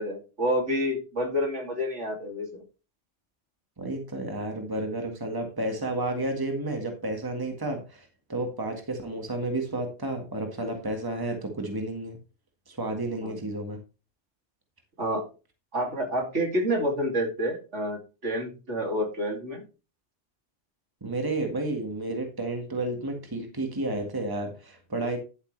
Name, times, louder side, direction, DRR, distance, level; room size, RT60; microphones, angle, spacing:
voice 1, 0.0-2.6 13.2-13.3 15.0-15.3 15.7-19.6, equal, 70° right, 2 dB, 3.1 m, -28 dB
voice 2, 3.8-12.2 12.7-13.8 21.0-25.2, right 2 dB, 20° right, 4 dB, 1.8 m, -31 dB
11.0 x 8.0 x 3.3 m, 0.32 s
omnidirectional pair, 1.3 m